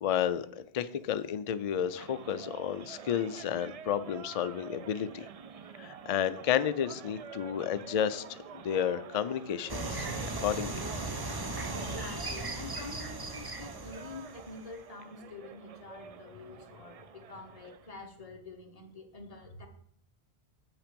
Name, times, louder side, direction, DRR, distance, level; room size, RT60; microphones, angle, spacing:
voice 1, 0.0-5.3 5.8-10.1 10.4-10.8, left 9 dB, 65° left, 12 dB, 0.3 m, -31 dB
sound 1, 1.7-17.9, right 7 dB, 65° right, 0.3 m, -48 dB
sound 2, 9.7-14.8, right 2 dB, 25° right, 0.6 m, -37 dB
voice 2, 11.2-19.7, left 3 dB, 35° left, 3 dB, 1.2 m, -47 dB
7.4 x 5.8 x 5.1 m, 0.66 s
omnidirectional pair, 1.1 m